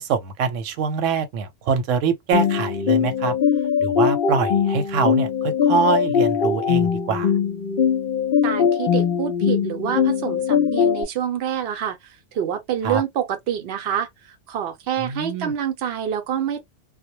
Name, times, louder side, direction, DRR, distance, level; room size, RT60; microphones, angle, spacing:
voice 1, 0.0-3.3 3.8-7.3 12.8-13.0 15.0-15.5, right 5 dB, 90° right, 0.9 m, -24 dB
sound 1, 2.3-11.0, left 7 dB, 55° left, 0.7 m, -21 dB
voice 2, 8.4-16.6, right 9 dB, 60° right, 0.8 m, -27 dB
2.1 x 2.1 x 2.8 m
omnidirectional pair, 1.3 m